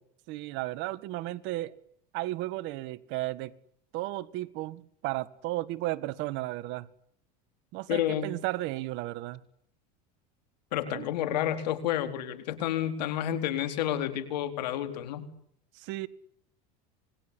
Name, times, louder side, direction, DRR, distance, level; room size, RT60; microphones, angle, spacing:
voice 1, 0.3-1.7 2.1-3.5 3.9-6.9 7.7-9.4 10.9-11.1 15.7-16.1, right 17 dB, 60° right, 1.8 m, -34 dB
voice 2, 7.9-8.3 10.7-15.3, left 11 dB, 85° left, 4.3 m, -30 dB
26.5 x 21.5 x 9.9 m
supercardioid pair, 110°, 21 cm